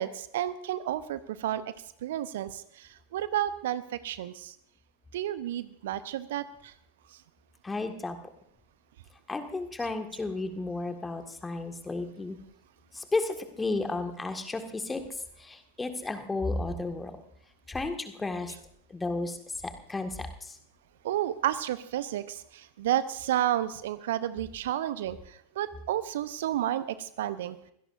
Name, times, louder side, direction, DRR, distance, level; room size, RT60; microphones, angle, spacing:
voice 1, 0.0-1.6 2.0-4.6 5.1-6.7 21.0-27.6, right 12 dB, 55° right, 15 dB, 0.7 m, -31 dB
voice 2, 7.6-8.2 9.3-12.4 12.9-15.0 15.4-17.1 17.7-18.5 18.9-19.4 19.6-20.6, left 3 dB, 10° left, 6 dB, 1.7 m, -33 dB
24.0 x 17.0 x 2.6 m, 0.71 s
figure-of-eight pair, 90°, 0 cm